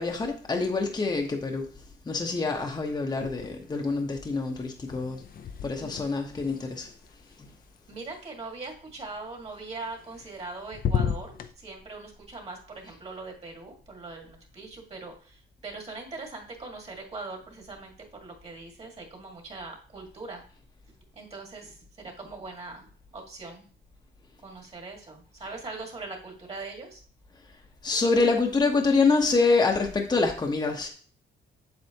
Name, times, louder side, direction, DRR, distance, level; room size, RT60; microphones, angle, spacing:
voice 1, 0.0-1.7 2.0-5.2 5.6-6.9 7.4-7.5 27.8-30.9, left 3 dB, 20° left, 2 dB, 1.0 m, -26 dB
sound 1, 3.1-3.8 4.1-8.2 9.8-10.5 10.7-11.5, left 7 dB, 50° left, 0.6 m, -34 dB
voice 2, 7.9-20.4 21.1-22.9 23.1-23.7 24.4-27.0, right 3 dB, 35° right, 1 dB, 1.9 m, -41 dB
7.9 x 7.5 x 2.9 m, 0.44 s
cardioid pair, 125°, 19 cm